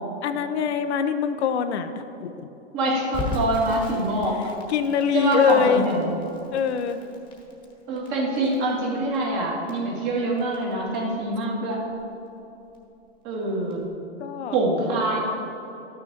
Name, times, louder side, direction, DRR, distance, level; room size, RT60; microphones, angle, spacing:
voice 1, 0.2-1.9 2.2-2.5 4.7-5.8 6.5-7.0 14.2-14.5, left 7 dB, 65° left, 9 dB, 0.7 m, -23 dB
voice 2, 2.7-4.4 5.1-6.1 7.9-11.8 13.2-13.8 14.5-15.2, right 2 dB, 35° right, -3 dB, 2.0 m, -25 dB
Crackle, 3.1-13.9, left 3 dB, 15° left, 1.4 m, -38 dB
12.5 x 6.4 x 4.3 m, 2.9 s
hypercardioid pair, 145°, 36 cm